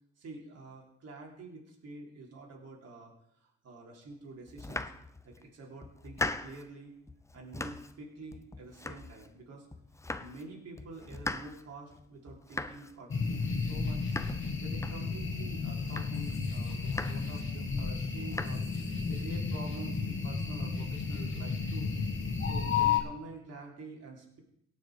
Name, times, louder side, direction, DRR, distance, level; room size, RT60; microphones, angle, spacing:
voice 1, 0.2-3.1 3.6-4.9 5.2-6.9 7.3-9.7 10.2-14.1 14.6-21.9 22.4-24.4, right 2 dB, 55° right, -1 dB, 3.7 m, -47 dB
Domestic sounds home sounds, 4.5-5.4 5.8-6.7 7.1-8.0 8.3-9.4 9.7-10.5 10.8-15.3 15.7-16.4 16.7-17.4 17.8-18.5, left 2 dB, 10° left, 0.6 m, -40 dB
sound 1, 13.1-23.0, left 5 dB, 40° left, 2.1 m, -33 dB
17.5 x 6.6 x 5.0 m, 0.73 s
cardioid pair, 90°, 30 cm